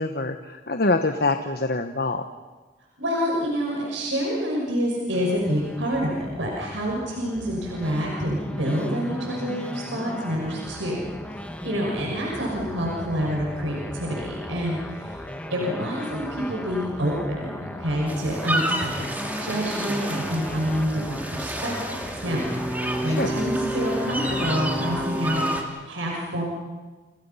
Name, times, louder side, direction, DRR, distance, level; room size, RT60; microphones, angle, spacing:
voice 1, 0.0-2.2 23.0-23.3, left 2 dB, 55° left, 7 dB, 1.2 m, -25 dB
voice 2, 3.0-11.0 11.6-15.2 15.5-22.5 23.0-26.4, equal, 85° right, -2 dB, 6.3 m, -27 dB
sound 1, 5.1-25.1, equal, 5° left, 1.8 m, -37 dB
sound 2, 18.1-25.6, right 1 dB, 10° right, 2.8 m, -29 dB
29.5 x 29.0 x 5.7 m, 1.3 s
head